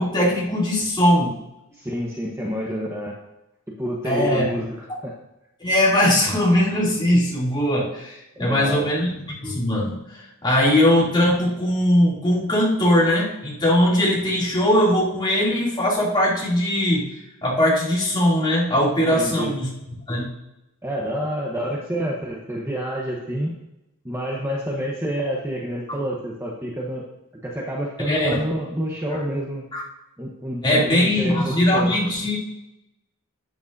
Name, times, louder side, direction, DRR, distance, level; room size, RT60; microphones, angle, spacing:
voice 1, 0.0-1.4 4.0-4.5 5.6-17.1 17.4-19.7 20.1-20.3 28.0-28.4 29.7-29.8 30.6-32.4, left 1 dB, 20° left, -5 dB, 2.8 m, -20 dB
voice 2, 1.7-3.1 3.7-5.1 8.4-8.9 19.1-19.6 20.8-23.5 24.0-27.0 27.4-29.6 30.2-31.9, equal, 10° right, -2 dB, 1.1 m, -28 dB
12.5 x 8.9 x 2.7 m, 0.92 s
head